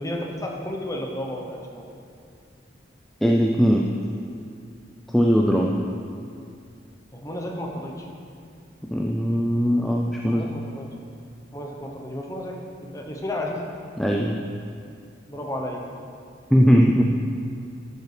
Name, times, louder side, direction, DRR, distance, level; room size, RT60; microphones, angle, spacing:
voice 1, 0.0-2.0 5.6-5.7 7.1-8.1 10.3-10.9 11.5-13.6 15.3-15.9, left 1 dB, 15° left, 0 dB, 0.9 m, -32 dB
voice 2, 3.2-3.9 5.1-5.7 8.9-10.5 14.0-14.4 16.5-17.0, equal, ahead, -1 dB, 0.4 m, -19 dB
12.5 x 6.8 x 3.4 m, 2.4 s
head